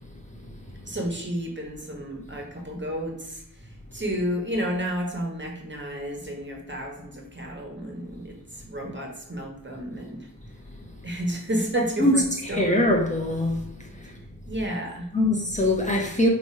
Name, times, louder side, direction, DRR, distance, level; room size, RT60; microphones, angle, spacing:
voice 1, 0.9-10.3 11.0-12.9 14.5-15.1, equal, 30° right, 1.8 m, -31 dB
voice 2, 12.5-13.6 15.1-16.3, left 1 dB, 20° left, 1.1 m, -22 dB
7.2 x 3.2 x 4.8 m
wide cardioid pair, 60°, 37 cm